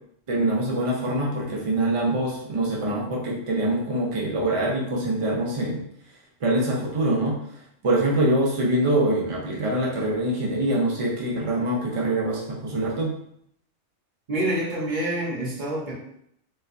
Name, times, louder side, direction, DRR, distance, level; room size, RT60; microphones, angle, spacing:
voice 1, 0.3-5.8 6.4-7.4 7.8-13.1, right 1 dB, 60° right, -2 dB, 0.3 m, -24 dB
voice 2, 14.3-15.9, right 1 dB, 40° right, -5 dB, 1.0 m, -27 dB
4.2 x 2.2 x 2.5 m, 0.70 s
omnidirectional pair, 1.4 m